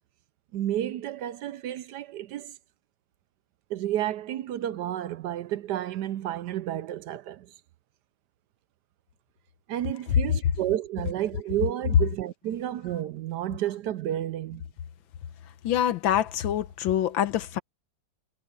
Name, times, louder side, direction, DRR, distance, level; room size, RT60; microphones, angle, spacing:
voice 1, 0.5-2.5 3.7-7.5 9.7-14.6, right 12 dB, 70° right, 1.1 m, -31 dB
voice 2, 15.6-17.6, left 10 dB, 90° left, 1.7 m, -25 dB
omnidirectional pair, 2.1 m